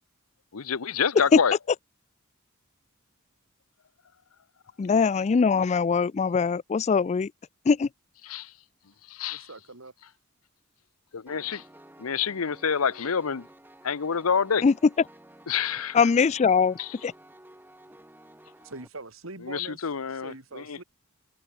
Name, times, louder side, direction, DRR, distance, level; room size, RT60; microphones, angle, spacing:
voice 1, 0.5-1.6 8.2-8.5 9.1-9.5 11.1-11.6 12.0-13.5 13.8-14.6 15.5-16.0 16.8-16.9 19.4-20.8, left 6 dB, 85° left, 0.8 m, -28 dB
voice 2, 4.8-7.3 7.7-7.9 14.6-14.7 15.9-16.8 17.0-17.1, left 5 dB, 30° left, 0.3 m, -21 dB
voice 3, 9.3-9.9 18.6-20.8, right 2 dB, 65° right, 2.8 m, -43 dB
Piano, 11.3-18.9, right 1 dB, 10° right, 3.1 m, -52 dB
head